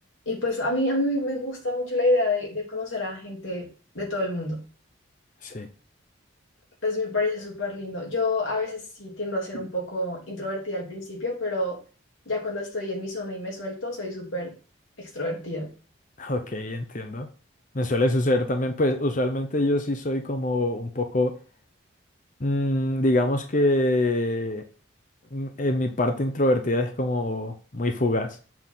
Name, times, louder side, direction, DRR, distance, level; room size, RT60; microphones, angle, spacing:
voice 1, 0.2-3.7 3.9-4.6 6.8-11.8 12.2-14.5 15.0-15.7, left 2 dB, 70° left, -2 dB, 3.1 m, -28 dB
voice 2, 16.2-17.3 17.7-21.3 22.4-24.6 25.3-28.4, left 1 dB, 40° left, 6 dB, 0.8 m, -25 dB
7.1 x 4.1 x 5.7 m, 0.38 s
head